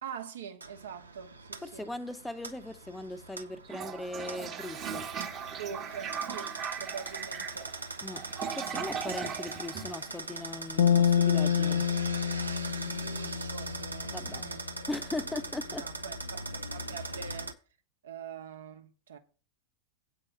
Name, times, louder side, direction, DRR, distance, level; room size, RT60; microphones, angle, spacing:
voice 1, 0.0-1.9 5.6-7.7 12.6-14.9 15.3-17.5 18.0-19.2, right 7 dB, 65° right, 1.1 m, -44 dB
sound 1, 0.6-17.5, right 2 dB, 80° right, 0.7 m, -41 dB
voice 2, 1.6-5.1 8.0-11.9 14.1-14.5 14.9-15.8, left 2 dB, 5° left, 0.7 m, -39 dB
Toilet flush, 3.6-10.6, right 7 dB, 30° right, 1.2 m, -38 dB
sound 2, 10.8-14.1, left 8 dB, 60° left, 0.5 m, -27 dB
8.8 x 4.8 x 7.6 m
figure-of-eight pair, 90°, 0 cm